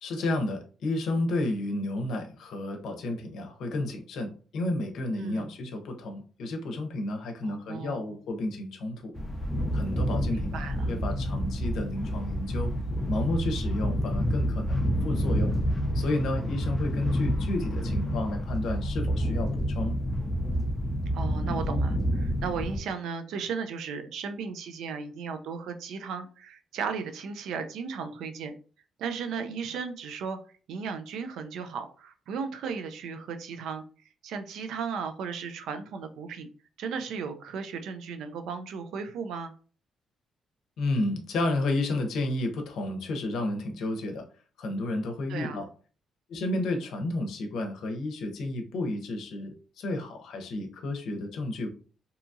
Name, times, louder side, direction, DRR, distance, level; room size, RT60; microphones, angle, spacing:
voice 1, 0.0-9.1 9.7-12.7 13.1-15.5 15.9-20.0 40.8-44.3 44.6-45.7 46.3-51.7, left 2 dB, 75° left, 5 dB, 0.6 m, -31 dB
voice 2, 5.2-5.5 7.4-8.0 10.3-10.9 21.1-28.5 29.0-30.4 30.7-33.8 34.2-36.5 36.8-39.5 45.3-45.7, right 6 dB, 80° right, 8 dB, 0.4 m, -35 dB
sound 1, 9.2-22.8, equal, 15° left, 0.5 m, -28 dB
2.7 x 2.3 x 2.6 m, 0.39 s
cardioid pair, 90°, 0 cm